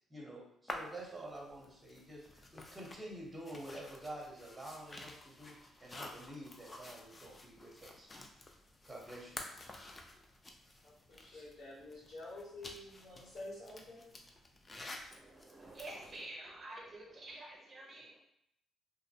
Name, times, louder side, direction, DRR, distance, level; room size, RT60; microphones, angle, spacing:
voice 1, 0.1-8.1 8.9-9.4, right 1 dB, 10° right, -3 dB, 0.8 m, -48 dB
sound 1, 0.7-16.3, left 2 dB, 30° left, 0.4 m, -51 dB
voice 2, 10.8-14.2, left 2 dB, 70° left, -5 dB, 1.1 m, -49 dB
voice 3, 15.1-18.2, right 1 dB, 40° right, -2 dB, 0.5 m, -49 dB
2.7 x 2.0 x 2.7 m, 0.74 s
cardioid pair, 85°, 0 cm